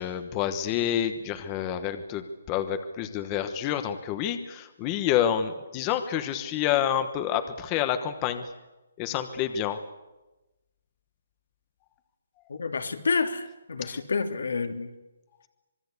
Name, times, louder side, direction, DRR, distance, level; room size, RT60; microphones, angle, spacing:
voice 1, 0.0-8.4 9.0-9.8 13.8-14.0, left 10 dB, 15° left, 9 dB, 1.1 m, -28 dB
voice 2, 12.5-14.9, left 4 dB, 80° left, 5 dB, 3.2 m, -29 dB
25.5 x 22.5 x 8.3 m, 1.1 s
hypercardioid pair, 175°, 0 cm